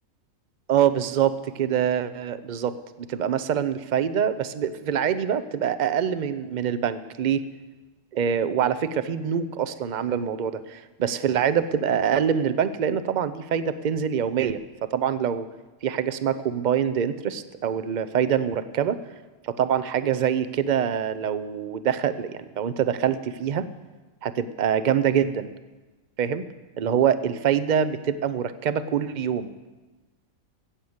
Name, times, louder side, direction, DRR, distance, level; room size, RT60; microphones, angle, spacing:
voice 1, 0.7-2.8 3.1-7.4 8.1-15.5 15.8-19.0 19.4-23.7 24.2-25.5 26.2-26.5 26.8-29.5, right 8 dB, 50° right, 13 dB, 0.6 m, -25 dB
14.5 x 8.6 x 7.9 m, 1.2 s
omnidirectional pair, 1.4 m